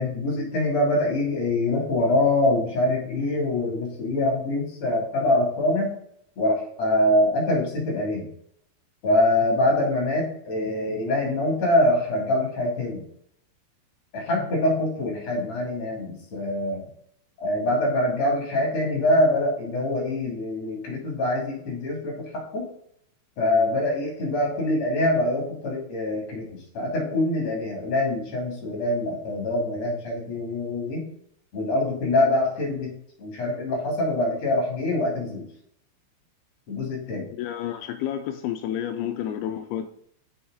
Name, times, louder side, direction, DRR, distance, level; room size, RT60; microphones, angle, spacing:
voice 1, 0.0-5.9 6.4-8.2 9.0-13.0 14.1-16.8 17.4-22.7 23.4-26.5 26.7-31.1 31.5-32.9 33.2-35.4 36.7-37.3, left 1 dB, 40° left, -1 dB, 3.7 m, -24 dB
voice 2, 37.2-39.9, left 10 dB, 85° left, 6 dB, 2.3 m, -30 dB
7.1 x 6.3 x 5.1 m, 0.67 s
omnidirectional pair, 4.9 m